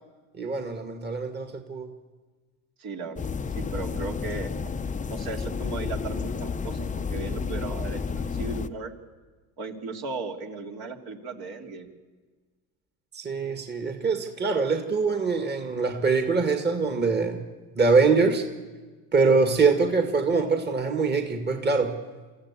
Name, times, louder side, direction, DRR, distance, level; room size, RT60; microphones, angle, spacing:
voice 1, 0.3-1.9 13.1-17.5 17.8-18.5 19.1-22.0, right 4 dB, 20° right, 5 dB, 2.0 m, -23 dB
voice 2, 2.8-3.3 3.5-4.5 5.1-8.9 9.6-11.9, right 3 dB, 55° right, 2 dB, 2.8 m, -36 dB
sound 1, 3.2-8.7, left 5 dB, 15° left, 0.7 m, -31 dB
25.5 x 15.0 x 8.4 m, 1.4 s
supercardioid pair, 85°, 44 cm